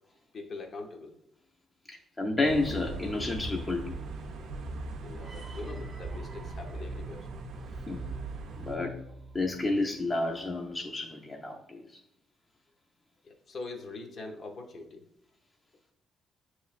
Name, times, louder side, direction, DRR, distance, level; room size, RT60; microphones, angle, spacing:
voice 1, 0.3-1.2 4.6-4.7 5.0-7.3 13.2-15.0, left 3 dB, 50° left, 3 dB, 0.7 m, -43 dB
voice 2, 1.9-4.0 7.9-8.1 8.6-9.0 9.3-11.8, left 2 dB, 20° left, 0 dB, 0.5 m, -31 dB
sound 1, 2.5-8.8, right 2 dB, 80° right, 0.5 m, -40 dB
sound 2, 5.2-10.3, right 1 dB, 40° right, 0.6 m, -45 dB
6.4 x 3.0 x 2.4 m, 0.75 s
cardioid pair, 90°, 0 cm